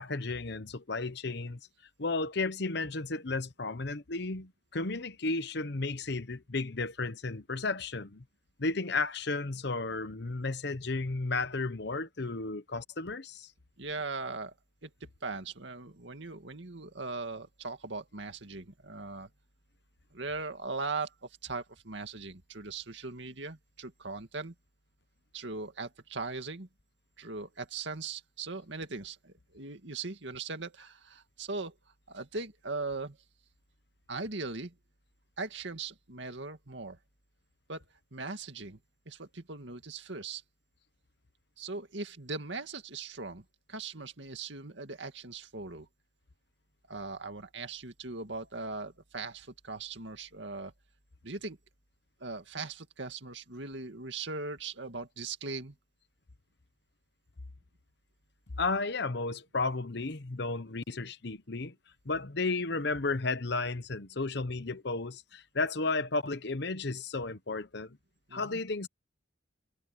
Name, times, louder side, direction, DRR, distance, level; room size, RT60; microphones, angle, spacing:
voice 1, 0.0-1.6 2.0-8.2 8.6-13.5 58.6-61.7 62.0-68.0 68.3-68.9, left 3 dB, 60° left, 1.0 m, -33 dB
voice 2, 13.8-14.5 14.8-19.3 20.1-24.5 25.3-26.7 27.2-31.8 32.1-33.2 34.1-34.7 35.4-37.0 37.7-37.8 38.1-38.8 39.1-40.4 41.6-45.9 46.9-50.7 51.2-51.6 52.2-55.8 68.3-68.6, right 3 dB, 70° right, 2.3 m, -39 dB
head